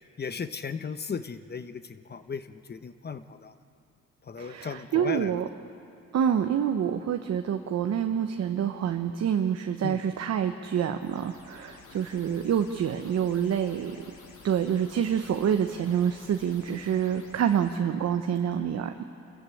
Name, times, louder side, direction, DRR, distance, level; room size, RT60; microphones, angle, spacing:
voice 1, 0.2-3.5 4.3-5.4 9.8-10.0, left 5 dB, 35° left, 11 dB, 1.0 m, -36 dB
voice 2, 4.4-5.5 6.1-14.0 14.4-18.9, right 8 dB, 60° right, 6 dB, 1.0 m, -27 dB
sound 1, 11.0-17.8, left 4 dB, 80° left, 3.2 m, -52 dB
27.5 x 14.5 x 8.5 m, 2.9 s
cardioid pair, 90°, 30 cm